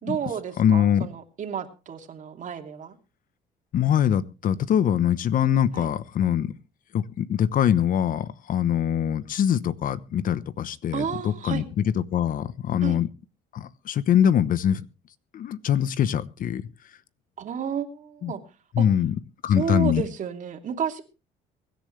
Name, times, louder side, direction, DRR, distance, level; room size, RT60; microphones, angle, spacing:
voice 1, 0.0-3.0 5.7-5.9 10.9-11.7 12.8-13.0 17.4-18.4 18.8-18.9 19.5-21.0, right 7 dB, 50° right, 5 dB, 2.8 m, -31 dB
voice 2, 0.6-1.1 3.7-6.5 6.9-11.6 12.1-13.1 13.5-14.8 15.3-16.6 18.2-18.3 18.7-19.1 19.4-20.0, left 9 dB, 55° left, 16 dB, 1.0 m, -23 dB
23.5 x 10.5 x 3.3 m, 0.32 s
cardioid pair, 110°, 17 cm